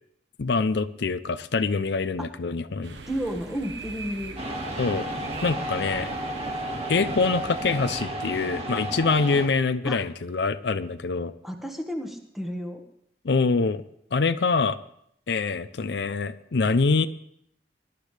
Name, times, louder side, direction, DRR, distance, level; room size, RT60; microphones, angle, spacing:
voice 1, 0.4-3.0 4.8-5.1 5.4-6.1 6.9-11.3 13.2-13.8 14.1-14.8 15.3-17.1, left 4 dB, 75° left, 12 dB, 0.5 m, -25 dB
sound 1, 2.8-8.1, right 3 dB, 85° right, 1.3 m, -43 dB
voice 2, 3.1-4.4 9.8-10.0 11.4-12.8, equal, ahead, 3 dB, 1.5 m, -32 dB
sound 2, 4.4-9.5, right 1 dB, 35° right, 1.9 m, -32 dB
22.0 x 12.0 x 3.4 m, 0.70 s
head